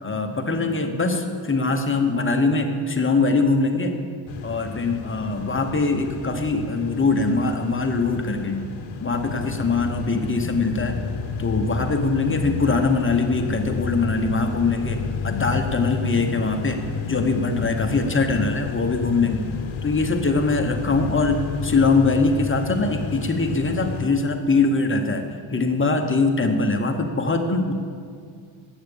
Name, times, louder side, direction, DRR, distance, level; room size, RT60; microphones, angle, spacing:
voice 1, 0.0-4.0 4.4-8.7 9.0-11.0 11.4-19.4 19.8-27.7, left 3 dB, 25° left, 4 dB, 0.8 m, -22 dB
sound 1, 4.3-24.1, left 5 dB, 65° left, 0.8 m, -31 dB
10.5 x 8.3 x 6.9 m, 2.2 s
wide cardioid pair, 160°, 49 cm